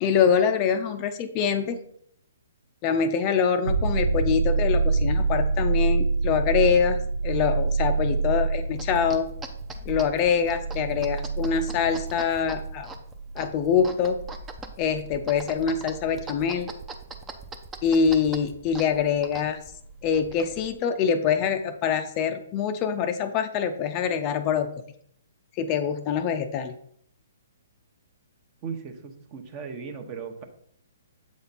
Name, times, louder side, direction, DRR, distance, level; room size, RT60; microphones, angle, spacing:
voice 1, 0.0-1.8 2.8-7.0 7.2-9.3 9.9-12.9 13.4-14.2 14.8-16.7 17.8-19.6 20.0-24.7 25.6-26.7, left 7 dB, 30° left, 7 dB, 0.5 m, -24 dB
sound 1, 3.7-17.2 19.9-20.0, right 4 dB, 85° right, 0.8 m, -27 dB
sound 2, 8.6-20.8, right 3 dB, 15° right, 0.6 m, -43 dB
voice 2, 28.6-30.4, right 6 dB, 30° right, 6 dB, 0.9 m, -37 dB
7.7 x 4.2 x 4.1 m, 0.66 s
hypercardioid pair, 150°, 0 cm